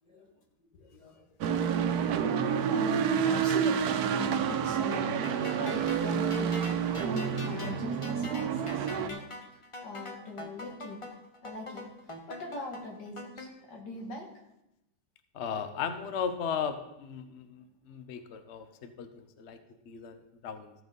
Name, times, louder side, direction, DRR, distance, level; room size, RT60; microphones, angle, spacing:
voice 1, 0.0-0.4 0.7-1.7 2.0-2.1 2.4-5.3 5.6-9.3 9.8-11.1 11.4-14.3, left 2 dB, 90° left, 1 dB, 2.5 m, -42 dB
sound 1, 1.4-9.1, right 7 dB, 70° right, 1.2 m, -29 dB
sound 2, 4.9-13.5, left 1 dB, 25° left, 0.9 m, -44 dB
voice 2, 15.3-19.6 19.9-20.7, left 7 dB, 50° left, 9 dB, 0.9 m, -36 dB
14.5 x 6.1 x 5.3 m, 0.89 s
omnidirectional pair, 1.8 m